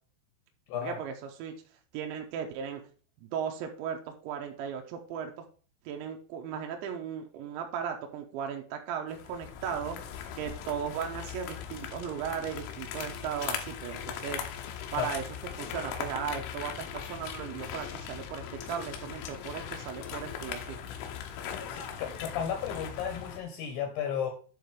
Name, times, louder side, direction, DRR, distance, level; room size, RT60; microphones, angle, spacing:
voice 1, 0.8-1.5 1.9-2.8 3.2-5.3 5.9-10.0 10.3-14.4 14.9-15.2 15.6-20.8, right 8 dB, 80° right, 3 dB, 2.8 m, -36 dB
sound 1, 9.1-23.4, left 8 dB, 85° left, 3.5 m, -39 dB
voice 2, 21.7-24.3, left 8 dB, 70° left, 5 dB, 2.8 m, -34 dB
9.5 x 4.1 x 5.1 m, 0.41 s
omnidirectional pair, 5.8 m